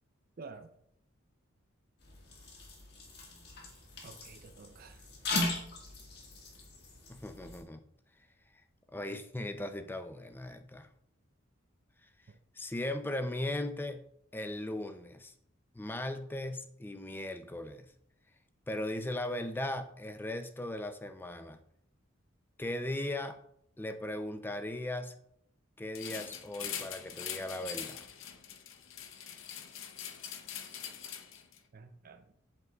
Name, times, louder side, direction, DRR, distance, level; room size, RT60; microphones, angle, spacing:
voice 1, 0.4-0.7 4.0-5.1 12.3-12.4 31.7-32.3, right 4 dB, 45° right, 0.5 m, -50 dB
sound 1, 2.0-7.6, left 2 dB, 50° left, 1.6 m, -39 dB
voice 2, 7.1-7.8 8.9-10.9 12.6-14.0 14.3-15.3 15.7-17.9 18.7-21.6 22.6-23.4 23.8-25.1 25.8-28.0, left 1 dB, 10° left, 0.4 m, -38 dB
sound 2, 25.9-31.6, left 9 dB, 75° left, 0.7 m, -43 dB
7.9 x 7.5 x 2.3 m
head